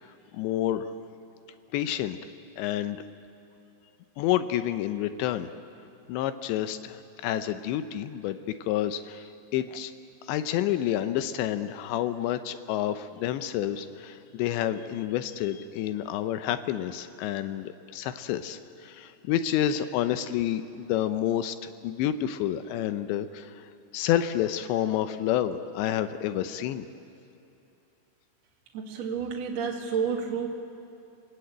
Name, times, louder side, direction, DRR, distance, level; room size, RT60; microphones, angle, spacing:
voice 1, 0.3-0.9 1.7-2.2 2.6-3.0 4.2-5.5 6.1-9.2 9.5-9.9 10.3-23.5 23.9-26.8, left 11 dB, 80° left, 11 dB, 2.9 m, -29 dB
voice 2, 28.7-30.5, right 6 dB, 50° right, 0 dB, 2.1 m, -30 dB
28.0 x 18.5 x 8.8 m, 2.7 s
omnidirectional pair, 5.2 m